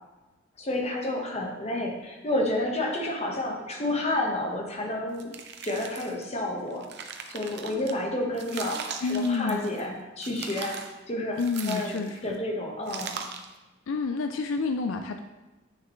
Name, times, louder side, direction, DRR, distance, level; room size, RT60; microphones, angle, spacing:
voice 1, 0.6-5.3 5.6-6.9 7.3-10.8 11.1-11.4 11.7-13.2, left 1 dB, 35° left, 0 dB, 1.3 m, -30 dB
sound 1, 5.2-6.2 6.7-7.9 8.4-9.9 10.2-11.0 11.4-12.3 12.9-13.5, right 6 dB, 55° right, 0.7 m, -39 dB
voice 2, 9.0-9.6 11.4-12.4 13.9-15.2, left 4 dB, 80° left, 6 dB, 0.4 m, -29 dB
9.0 x 6.6 x 3.1 m, 1.1 s
head